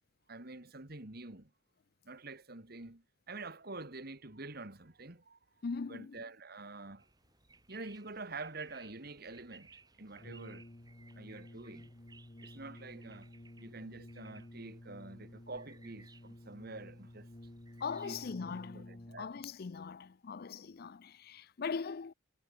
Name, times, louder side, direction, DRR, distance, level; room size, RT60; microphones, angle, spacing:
voice 1, 0.3-1.5 2.0-5.4 5.9-7.1 7.7-10.7 11.1-11.9 12.4-13.3 13.6-17.3 18.0-18.2 18.5-19.3, right 3 dB, 50° right, 2.2 m, -47 dB
voice 2, 5.6-6.2 17.8-22.1, left 5 dB, 50° left, 0.5 m, -40 dB
sound 1, 7.0-18.6, right 4 dB, 20° right, 4.0 m, -62 dB
Brass instrument, 10.2-19.5, left 1 dB, 30° left, 1.2 m, -52 dB
head